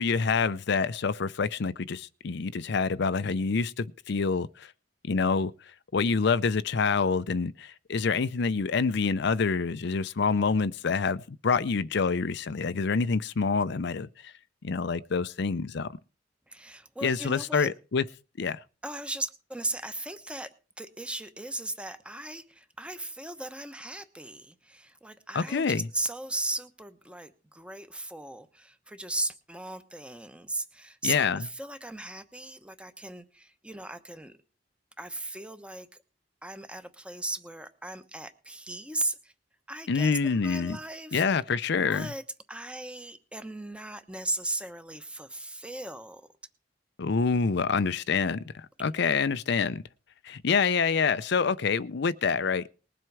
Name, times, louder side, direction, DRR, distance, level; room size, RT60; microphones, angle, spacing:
voice 1, 0.0-4.7 5.1-5.5 5.9-14.3 14.6-15.9 17.0-18.0 18.4-18.6 25.3-25.8 31.0-31.4 39.9-40.8 41.1-42.1 47.0-49.8 50.2-52.7, left 5 dB, 65° left, 0.5 m, -27 dB
voice 2, 16.5-17.7 18.8-20.5 20.8-34.4 35.0-35.9 36.4-39.3 39.7-41.6 41.9-42.2 42.5-46.2, right 1 dB, 5° right, 1.0 m, -37 dB
20.0 x 7.7 x 4.8 m
head